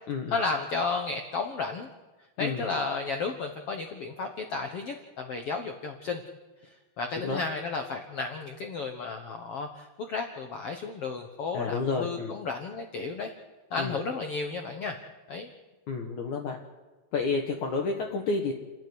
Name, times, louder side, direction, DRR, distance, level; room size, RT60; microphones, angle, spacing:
voice 1, 0.3-1.9 2.4-6.2 6.6-13.3 13.7-15.0 15.3-15.5, left 4 dB, 85° left, 5 dB, 1.3 m, -33 dB
voice 2, 11.5-12.4 13.8-14.0 15.9-16.6 17.1-18.5, left 4 dB, 60° left, 2 dB, 2.4 m, -30 dB
30.0 x 10.0 x 9.6 m, 1.2 s
omnidirectional pair, 4.6 m